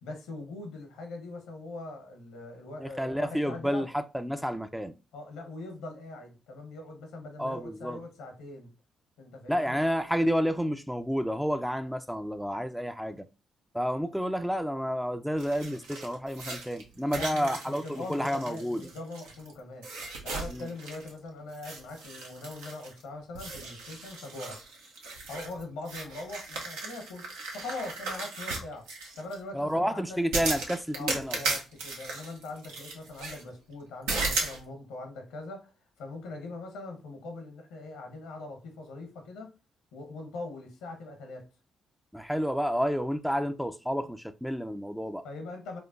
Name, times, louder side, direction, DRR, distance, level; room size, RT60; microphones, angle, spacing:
voice 1, 0.0-3.9 5.1-8.7 9.2-9.8 17.0-19.9 20.2-24.6 25.3-30.2 30.9-35.7 36.0-39.5 39.9-41.5 45.2-45.8, left 2 dB, 75° left, 0.8 m, -42 dB
voice 2, 2.8-4.9 7.4-8.0 9.5-13.3 13.7-18.9 20.5-20.7 29.5-31.4 42.1-45.3, equal, ahead, 0.4 m, -30 dB
sound 1, 15.4-19.5 19.8-21.2 21.5-23.0 23.3-29.3 30.3-33.4 34.1-34.6, right 3 dB, 80° right, 0.7 m, -36 dB
4.5 x 2.4 x 2.4 m
hypercardioid pair, 40°, 0 cm